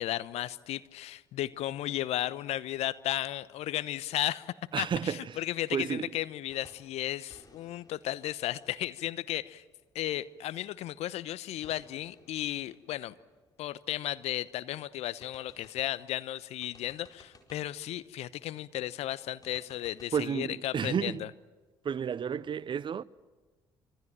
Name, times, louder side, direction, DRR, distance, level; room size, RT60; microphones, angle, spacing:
voice 1, 0.0-9.6 9.9-13.1 13.6-21.3, left 13 dB, 60° left, 0.9 m, -34 dB
voice 2, 4.7-5.4 5.7-6.1 20.1-21.3 21.8-23.0, right 7 dB, 40° right, 0.8 m, -32 dB
sound 1, 6.5-7.0 7.3-9.9 11.6-14.3 14.7-14.8 15.2-16.1 16.6-17.8 19.4-20.3, left 3 dB, 30° left, 4.5 m, -60 dB
26.0 x 25.5 x 7.6 m
hypercardioid pair, 50°, 12 cm